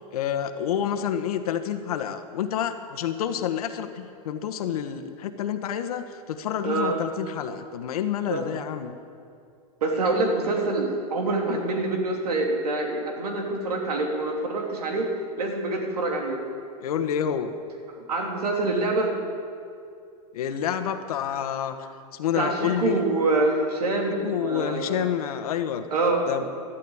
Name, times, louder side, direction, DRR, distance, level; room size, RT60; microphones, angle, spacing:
voice 1, 0.0-9.0 16.8-17.5 20.3-23.0 24.2-25.9 26.3-26.5, left 9 dB, 75° left, 8 dB, 1.4 m, -28 dB
voice 2, 6.6-7.0 8.3-8.4 9.8-15.1 15.4-16.4 18.0-19.1 22.3-25.1 25.9-26.2, right 2 dB, 85° right, 1 dB, 3.1 m, -26 dB
13.0 x 12.5 x 8.7 m, 2.4 s
hypercardioid pair, 120°, 19 cm